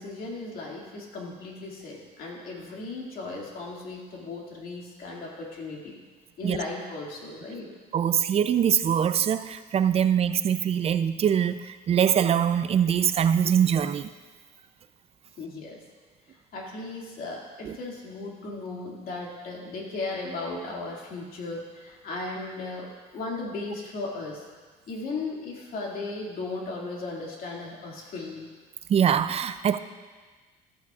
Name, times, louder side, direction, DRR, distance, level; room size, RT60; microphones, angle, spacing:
voice 1, 0.0-6.0 6.4-7.7 15.4-15.8 16.5-22.9 23.1-24.4 24.9-28.5, left 3 dB, 60° left, -2 dB, 2.3 m, -36 dB
voice 2, 7.9-14.1 17.6-17.8 28.9-29.8, right 8 dB, 35° right, 12 dB, 0.4 m, -23 dB
13.5 x 8.5 x 2.4 m, 1.4 s
cardioid pair, 110°, 17 cm